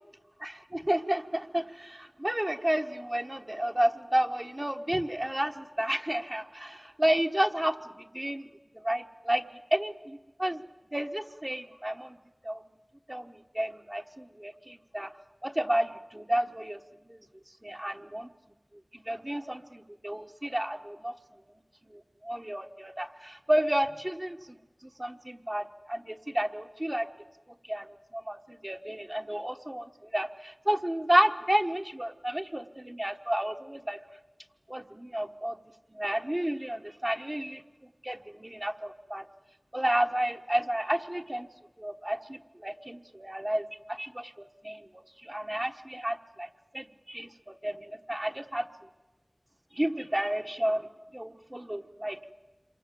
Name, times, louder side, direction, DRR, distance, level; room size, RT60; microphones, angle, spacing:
voice 1, 0.4-8.5 8.7-9.4 9.7-10.6 10.9-12.2 12.4-12.6 13.1-15.1 15.4-16.8 17.0-17.2 17.6-18.3 18.9-21.1 21.9-24.6 24.8-27.1 27.7-34.0 34.7-35.6 35.9-37.6 38.0-39.2 39.7-41.5 41.8-44.9 45.2-48.7 49.7-50.9 51.1-52.2, right 1 dB, 25° right, 4 dB, 1.2 m, -31 dB
27.0 x 24.0 x 7.6 m, 1.2 s
wide cardioid pair, 40°, 0 cm